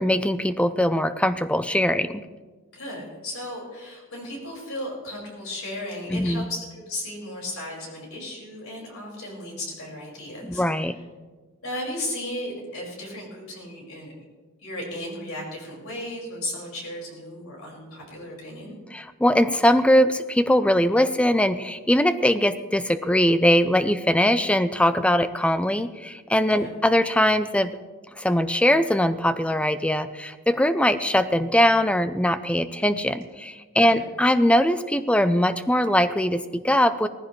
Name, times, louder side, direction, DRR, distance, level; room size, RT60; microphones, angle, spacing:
voice 1, 0.0-2.3 6.1-6.5 10.5-11.0 18.9-27.7 28.2-37.1, equal, 5° left, 12 dB, 0.4 m, -21 dB
voice 2, 2.7-10.6 11.6-14.1 14.6-18.8 26.5-26.7 33.8-34.1, left 1 dB, 85° left, -2 dB, 5.4 m, -35 dB
18.5 x 15.0 x 3.2 m, 1.4 s
head